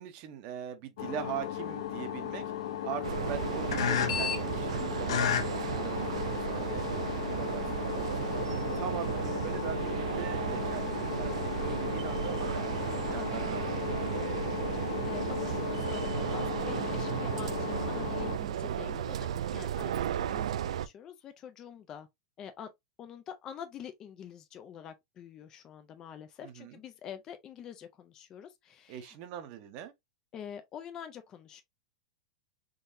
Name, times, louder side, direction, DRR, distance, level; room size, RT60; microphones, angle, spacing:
voice 1, 0.0-13.6 13.9-14.9 18.4-18.9 26.4-26.8 28.9-29.9, right 9 dB, 30° right, 0.7 m, -42 dB
sound 1, 1.0-18.4, left 10 dB, 60° left, 0.7 m, -35 dB
sound 2, 3.0-20.9, right 9 dB, 75° right, 0.3 m, -34 dB
voice 2, 13.1-13.4 13.8-14.3 15.1-22.1 22.4-22.7 23.0-29.1 30.3-31.6, left 8 dB, 20° left, 0.3 m, -46 dB
3.7 x 2.7 x 2.5 m
supercardioid pair, 170°, 3 cm